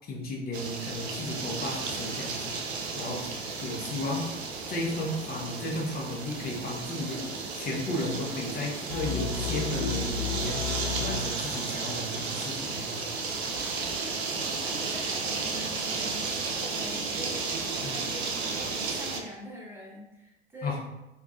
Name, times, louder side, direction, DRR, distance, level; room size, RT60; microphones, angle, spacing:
voice 1, 0.1-2.6 2.9-3.3 3.6-4.3 4.7-7.2 7.5-10.6 11.0-13.0 17.8-17.9 20.6-20.8, left 1 dB, 30° left, -3 dB, 0.9 m, -34 dB
sound 1, 0.5-19.2, right 4 dB, 80° right, 0.5 m, -33 dB
sound 2, 8.9-11.8, left 6 dB, 60° left, 0.5 m, -32 dB
voice 2, 14.4-20.8, equal, 5° right, -4 dB, 0.9 m, -44 dB
4.0 x 2.4 x 2.4 m, 0.98 s
figure-of-eight pair, 75°, 32 cm